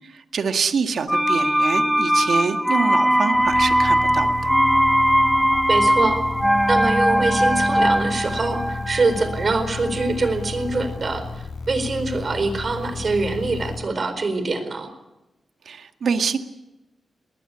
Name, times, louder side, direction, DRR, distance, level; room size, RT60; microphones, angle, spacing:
voice 1, 0.1-4.5 15.7-16.4, right 5 dB, 75° right, 7 dB, 1.8 m, -25 dB
sound 1, 1.1-10.8 11.1-11.2, equal, ahead, 0.8 m, -20 dB
sound 2, 3.3-13.8, left 4 dB, 85° left, 6.6 m, -33 dB
voice 2, 5.7-6.2 6.7-14.9, right 3 dB, 45° right, 10 dB, 4.3 m, -24 dB
20.5 x 20.0 x 8.5 m, 0.98 s
wide cardioid pair, 110°, 0 cm